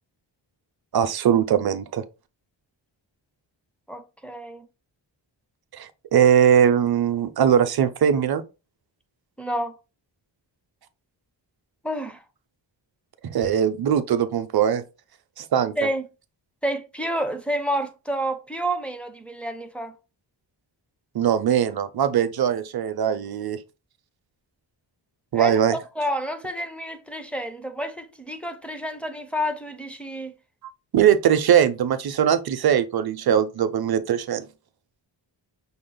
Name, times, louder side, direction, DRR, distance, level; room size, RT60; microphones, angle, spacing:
voice 1, 0.9-2.0 5.8-8.4 13.2-14.8 15.4-15.7 21.1-23.6 25.3-25.8 30.9-34.5, right 9 dB, 55° right, 0.5 m, -21 dB
voice 2, 3.9-4.7 9.4-9.7 11.8-12.2 15.8-16.1 16.6-19.9 25.3-30.3, equal, 5° left, 0.4 m, -29 dB
5.7 x 2.0 x 3.8 m
wide cardioid pair, 145°, 46 cm